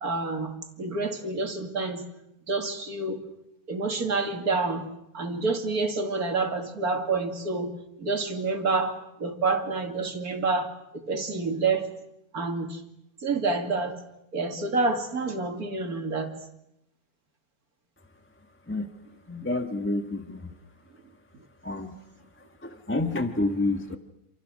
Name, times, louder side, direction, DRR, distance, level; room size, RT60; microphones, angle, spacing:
voice 1, 0.0-2.0 2.4-3.2 3.7-12.0 12.3-12.8 13.2-14.0 14.3-16.4, right 3 dB, 90° right, 4 dB, 2.9 m, -28 dB
voice 2, 19.3-20.5 21.6-22.0 22.3-24.0, left 2 dB, 10° left, 6 dB, 1.1 m, -29 dB
28.5 x 27.5 x 6.3 m, 0.82 s
omnidirectional pair, 1.5 m